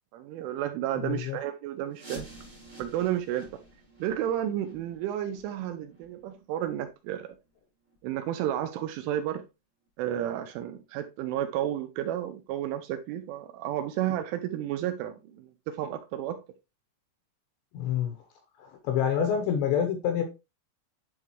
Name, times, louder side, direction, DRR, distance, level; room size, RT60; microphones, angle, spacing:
voice 1, 0.1-2.3 2.8-3.6 4.0-7.3 8.0-9.4 10.0-16.4, right 11 dB, 80° right, 2.9 m, -32 dB
voice 2, 1.0-1.4 17.7-18.2 18.6-20.2, left 8 dB, 75° left, 2.7 m, -27 dB
sound 1, 1.9-7.5 7.8-8.0 8.5-8.6 9.2-9.3 9.9-10.0, right 1 dB, 30° right, 0.8 m, -50 dB
11.0 x 3.8 x 3.0 m
omnidirectional pair, 6.0 m